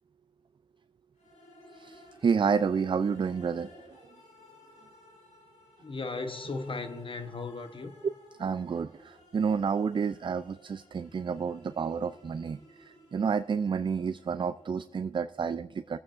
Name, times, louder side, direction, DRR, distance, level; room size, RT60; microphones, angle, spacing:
sound 1, 1.1-15.0, left 1 dB, 85° left, 3.6 m, -56 dB
voice 1, 1.8-3.7 8.4-16.0, right 6 dB, 40° right, 0.3 m, -30 dB
voice 2, 5.8-7.9, left 3 dB, 45° left, 1.0 m, -36 dB
19.5 x 8.5 x 2.5 m
cardioid pair, 55°, 12 cm